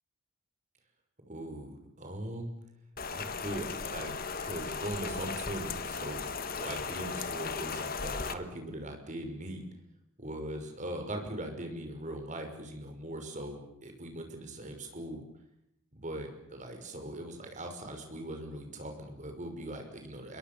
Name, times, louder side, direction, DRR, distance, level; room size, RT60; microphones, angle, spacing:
voice 1, 1.3-2.5 3.1-4.2 4.4-6.3 6.6-9.6 10.2-15.2 15.9-20.4, right 1 dB, 35° right, 5 dB, 5.7 m, -40 dB
Rain, 3.0-8.3, left 5 dB, 45° left, 1.5 m, -36 dB
29.5 x 22.0 x 7.0 m, 0.81 s
head